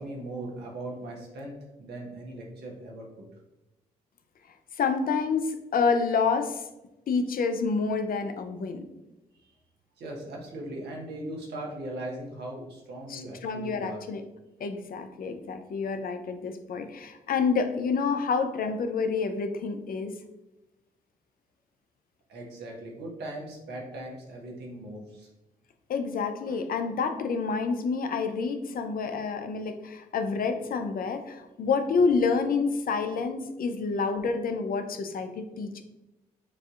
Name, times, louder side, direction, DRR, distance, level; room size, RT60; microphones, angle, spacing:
voice 1, 0.0-3.0 10.0-14.0 22.3-25.3, right 1 dB, 75° right, -1 dB, 1.2 m, -39 dB
voice 2, 4.8-6.6 7.1-8.8 13.1-14.2 14.6-20.2 25.9-35.8, left 5 dB, 55° left, 7 dB, 0.6 m, -28 dB
6.8 x 2.7 x 2.4 m, 0.98 s
hypercardioid pair, 45°, 17 cm